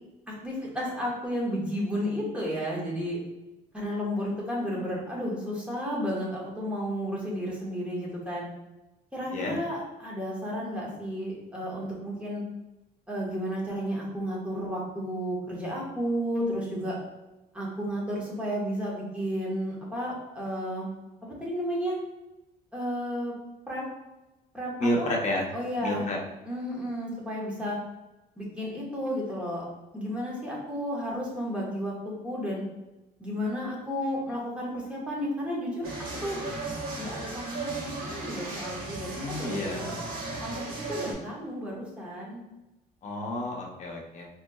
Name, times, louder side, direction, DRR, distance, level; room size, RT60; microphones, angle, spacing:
voice 1, 0.3-3.2 3.7-8.5 9.1-12.4 13.1-17.0 17.5-20.9 21.2-22.0 22.7-23.3 23.7-23.9 24.5-25.1 25.5-26.1 26.4-27.8 28.4-29.6 29.9-32.6 33.2-35.9 36.2-36.4 37.0-40.0 40.4-42.4, equal, 5° right, -4 dB, 1.4 m, -32 dB
voice 2, 24.8-25.5 25.8-26.2 39.1-39.9 43.0-44.3, left 1 dB, 45° left, -1 dB, 0.9 m, -30 dB
sound 1, 35.8-41.1, right 2 dB, 60° right, 1.2 m, -36 dB
4.3 x 3.1 x 2.3 m, 1.0 s
cardioid pair, 110°, 17 cm